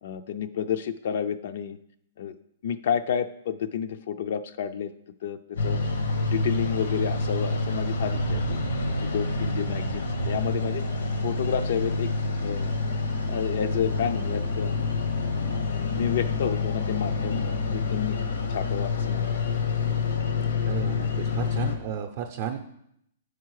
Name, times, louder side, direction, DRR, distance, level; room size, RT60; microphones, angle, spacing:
voice 1, 0.0-1.8 2.2-2.4 2.6-4.9 5.2-5.4 5.6-5.8 6.2-8.6 9.0-10.8 11.2-12.1 12.4-12.7 13.3-14.7 15.8-17.4 17.7-18.2 18.5-19.4, left 8 dB, 55° left, 10 dB, 0.4 m, -30 dB
sound 1, 5.5-21.8, left 4 dB, 80° left, 0.9 m, -28 dB
sound 2, 5.8-20.1, right 4 dB, 85° right, 0.6 m, -40 dB
voice 2, 20.6-22.6, right 8 dB, 45° right, 4 dB, 0.5 m, -33 dB
8.4 x 4.7 x 4.7 m, 0.75 s
hypercardioid pair, 165°, 0 cm